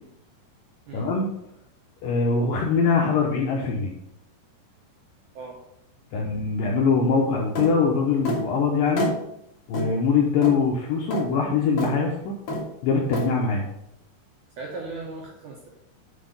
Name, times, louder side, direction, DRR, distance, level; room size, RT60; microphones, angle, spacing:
voice 1, 0.9-1.3 2.0-3.9 6.1-9.1 9.7-12.3 12.8-13.7, left 5 dB, 75° left, -1 dB, 2.0 m, -22 dB
sound 1, 7.6-7.7 8.2-8.4 9.0-9.2 9.7-9.9 10.4-10.6 11.1-11.2 11.8-11.9 12.5-12.7 13.1-13.3, left 1 dB, 45° left, 2.3 m, -27 dB
voice 2, 14.6-15.7, right 3 dB, 70° right, -2 dB, 2.0 m, -37 dB
9.7 x 4.0 x 5.3 m, 0.80 s
omnidirectional pair, 4.9 m